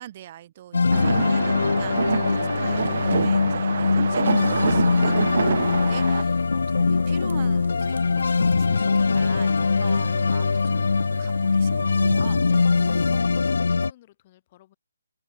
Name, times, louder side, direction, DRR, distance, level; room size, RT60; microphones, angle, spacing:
voice 1, 0.0-12.5 13.6-13.7, right 12 dB, 30° right, 2.8 m, -42 dB
sound 1, 0.7-13.9, left 4 dB, 70° left, 0.4 m, -22 dB
sound 2, 0.9-6.2, right 7 dB, 50° right, 1.2 m, -27 dB
sound 3, 4.3-13.2, right 4 dB, 65° right, 1.5 m, -41 dB
voice 2, 12.5-14.8, left 15 dB, 30° left, 5.9 m, -55 dB
open air
figure-of-eight pair, 160°, 0 cm